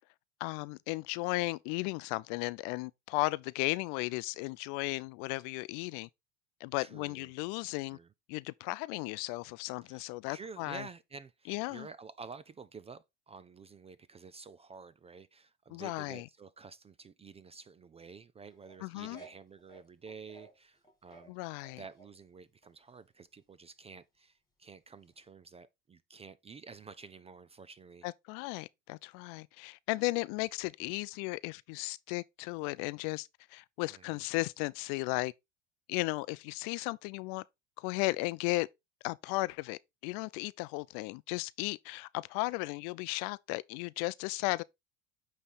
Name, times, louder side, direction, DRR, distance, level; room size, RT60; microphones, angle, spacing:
voice 1, 0.4-6.1 6.6-8.0 8.3-10.9 11.5-11.9 15.7-16.3 18.8-19.2 21.3-21.8 28.0-35.3 35.9-37.4 37.8-38.7 39.0-44.6, left 23 dB, 55° left, 0.5 m, -35 dB
voice 2, 6.8-7.3 7.9-8.1 9.8-21.3 21.8-28.1 33.9-34.2, right 5 dB, 15° right, 0.4 m, -50 dB
sound 1, 18.5-20.6 20.8-22.1 22.6-23.1 25.1-25.2, right 3 dB, 10° left, 2.2 m, -55 dB
9.0 x 3.3 x 4.1 m
hypercardioid pair, 85°, 39 cm